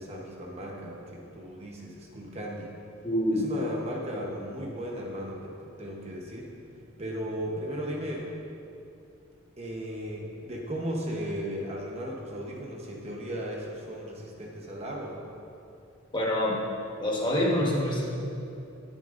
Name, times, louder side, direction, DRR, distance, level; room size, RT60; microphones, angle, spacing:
voice 1, 0.0-2.7 3.3-6.5 7.0-8.3 9.6-15.2, equal, 30° right, -2 dB, 1.0 m, -36 dB
voice 2, 3.0-3.5 16.1-16.6 17.0-18.0, left 1 dB, 25° left, -3 dB, 1.4 m, -26 dB
19.0 x 7.0 x 2.6 m, 2.7 s
head